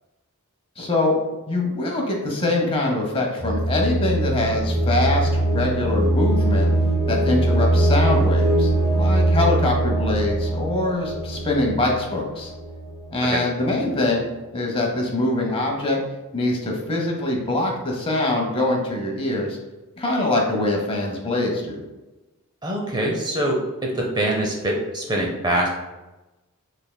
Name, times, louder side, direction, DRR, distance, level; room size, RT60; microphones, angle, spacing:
voice 1, 0.8-1.2 1.5-6.7 7.1-8.7 8.9-12.5 13.1-14.3 14.5-16.0 16.3-19.6 20.0-21.8, left 2 dB, 25° left, 0 dB, 0.8 m, -23 dB
sound 1, 3.4-13.2, right 1 dB, 65° right, 1.3 m, -22 dB
voice 2, 22.6-25.7, right 1 dB, 20° right, -1 dB, 0.6 m, -24 dB
6.3 x 3.4 x 2.2 m, 1.1 s
head